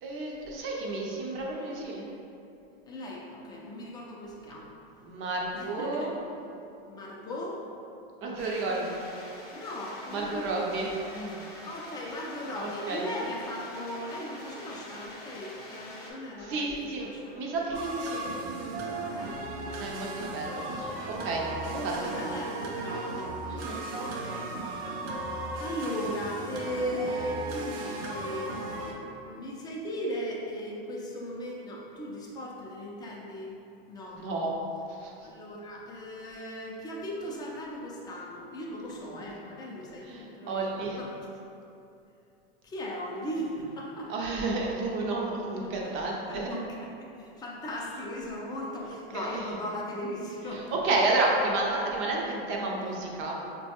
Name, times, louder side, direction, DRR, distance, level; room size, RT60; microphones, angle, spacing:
voice 1, 0.0-2.1 5.0-6.3 8.2-9.0 10.1-11.4 12.6-13.0 16.4-18.8 19.7-21.4 21.8-22.1 23.5-23.8 34.1-34.5 34.9-35.1 40.0-41.0 44.1-46.5 49.1-49.6 50.5-53.3, right 2 dB, 40° right, -2 dB, 0.6 m, -31 dB
voice 2, 2.9-4.7 5.5-6.1 6.9-7.6 9.5-10.7 11.6-17.7 19.0-19.9 21.3-21.4 21.7-24.8 25.6-33.6 33.9-34.2 35.2-41.1 42.6-44.1 45.8-45.9 46.3-50.8, equal, 15° left, -3 dB, 0.4 m, -38 dB
sound 1, 8.4-16.1, left 1 dB, 30° left, 0.8 m, -46 dB
sound 2, 17.7-28.9, right 2 dB, 85° right, 0.5 m, -36 dB
3.7 x 2.2 x 2.8 m, 2.7 s
hypercardioid pair, 120°, 31 cm